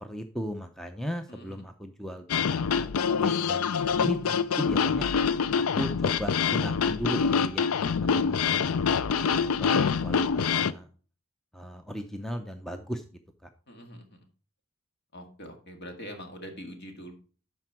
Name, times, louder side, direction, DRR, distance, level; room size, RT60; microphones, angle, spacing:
voice 1, 0.0-2.5 2.8-2.9 3.2-5.1 5.5-7.7 8.0-9.0 9.4-10.9 11.5-13.0 13.4-13.5, equal, ahead, 6 dB, 0.5 m, -37 dB
voice 2, 1.3-1.6 13.7-14.3 15.1-17.1, equal, 50° left, 4 dB, 1.9 m, -43 dB
sound 1, 2.3-10.7, left 6 dB, 85° left, 0.5 m, -25 dB
12.0 x 4.4 x 4.6 m, 0.39 s
head